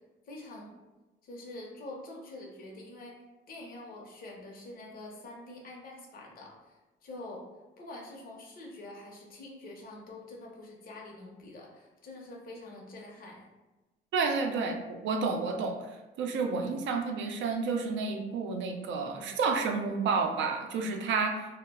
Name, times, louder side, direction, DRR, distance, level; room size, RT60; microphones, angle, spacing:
voice 1, 0.3-0.8 1.2-3.1 3.5-7.4 7.8-13.5, left 2 dB, 45° left, -2 dB, 0.6 m, -46 dB
voice 2, 14.1-15.8 16.2-21.5, right 4 dB, 70° right, 4 dB, 0.4 m, -30 dB
2.1 x 2.0 x 3.4 m, 1.1 s
cardioid pair, 90°, 20 cm